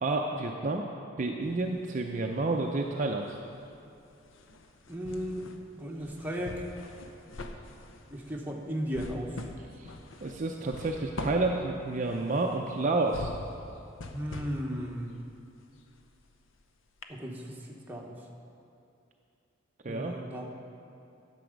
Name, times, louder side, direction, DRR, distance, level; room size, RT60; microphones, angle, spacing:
voice 1, 0.0-0.9 1.2-3.4 9.8-9.9 10.2-13.3 19.8-20.1, right 2 dB, 40° right, 2 dB, 0.5 m, -30 dB
sound 1, 1.4-2.6 2.9-16.6 17.0-17.1, left 2 dB, 70° left, 0.7 m, -44 dB
voice 2, 4.9-5.5 5.7-6.7 8.1-9.4 14.1-15.2 17.1-18.1 19.8-20.5, equal, 10° right, -2 dB, 1.0 m, -36 dB
11.0 x 6.9 x 5.1 m, 2.6 s
head